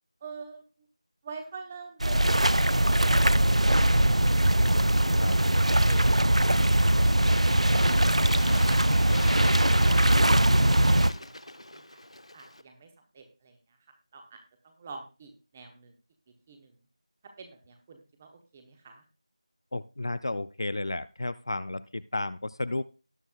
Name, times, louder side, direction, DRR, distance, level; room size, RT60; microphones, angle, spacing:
voice 1, 0.2-0.6 1.2-4.9 5.4-8.8 9.3-12.0 12.3-13.8 14.1-16.0 16.5-16.8 17.2-19.0, right 4 dB, 10° right, 5 dB, 0.9 m, -47 dB
sound 1, 2.0-11.1, right 1 dB, 80° right, 0.6 m, -21 dB
Bird / Water, 5.9-12.6, left 1 dB, 75° left, 1.0 m, -45 dB
voice 2, 19.7-22.8, left 2 dB, 45° left, 16 dB, 0.4 m, -32 dB
18.5 x 6.9 x 2.3 m, 0.32 s
figure-of-eight pair, 170°, 3 cm